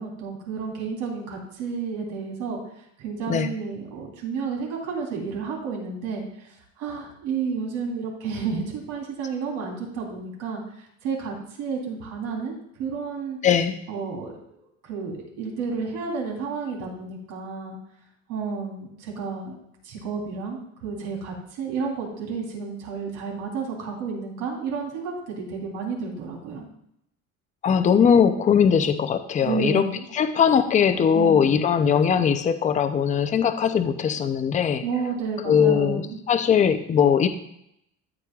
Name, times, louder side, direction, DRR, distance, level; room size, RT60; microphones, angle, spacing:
voice 1, 0.0-2.6 3.0-6.2 6.8-10.6 11.0-13.4 13.9-17.8 18.3-19.5 19.8-26.7 29.4-30.0 31.1-31.6 34.8-36.2, right 5 dB, 90° right, -1 dB, 3.5 m, -31 dB
voice 2, 13.4-13.8 27.6-29.8 30.1-34.8 35.4-37.3, left 7 dB, 25° left, 9 dB, 0.5 m, -20 dB
14.0 x 8.4 x 2.4 m, 0.76 s
cardioid pair, 165°, 31 cm